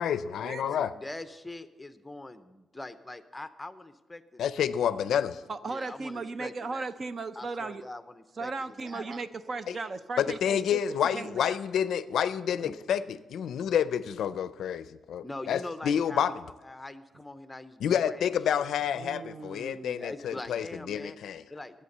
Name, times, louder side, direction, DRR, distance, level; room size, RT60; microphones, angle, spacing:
voice 1, 0.0-0.9 4.4-5.4 9.7-9.8 10.2-16.3 17.8-21.3, left 8 dB, 85° left, 15 dB, 0.4 m, -29 dB
voice 2, 0.6-4.4 5.6-6.9 7.4-9.0 12.6-12.7 15.2-18.2 18.5-18.6 20.0-21.2 21.5-21.8, left 2 dB, 10° left, 11 dB, 0.6 m, -43 dB
voice 3, 5.5-7.9 8.4-10.8 11.1-11.6 19.0-20.0, right 3 dB, 40° right, 12 dB, 0.6 m, -36 dB
11.0 x 8.6 x 6.6 m, 1.1 s
wide cardioid pair, 130°, 0 cm